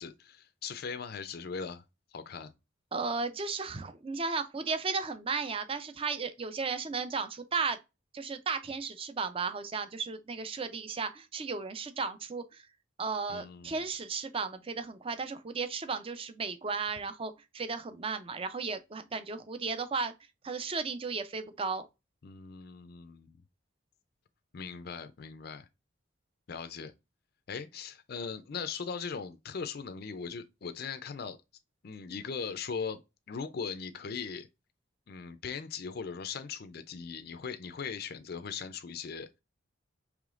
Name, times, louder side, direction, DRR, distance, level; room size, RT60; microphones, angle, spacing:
voice 1, 0.0-1.8 2.1-2.5 13.3-13.7 22.2-23.4 24.5-25.7 26.5-26.9 27.5-31.4 31.8-33.0 33.3-34.5 35.1-39.3, left 5 dB, 50° left, 0.4 m, -39 dB
voice 2, 2.9-7.8 8.1-12.6 13.0-20.1 20.4-21.9, right 4 dB, 30° right, 0.5 m, -35 dB
4.9 x 3.1 x 2.4 m
head